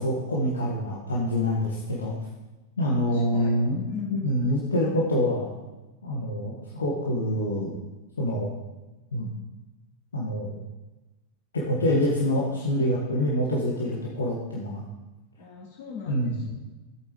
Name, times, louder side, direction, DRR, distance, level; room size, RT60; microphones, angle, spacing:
voice 1, 0.0-2.1 2.8-3.8 4.1-5.5 6.0-7.7 8.2-8.5 9.1-9.3 10.1-10.6 11.5-14.8 16.1-16.3, equal, 70° left, -5 dB, 1.7 m, -26 dB
voice 2, 3.1-3.5 3.9-4.3 15.4-16.5, left 4 dB, 55° left, -6 dB, 3.9 m, -38 dB
14.5 x 8.6 x 3.2 m, 1.1 s
figure-of-eight pair, 90°, 0 cm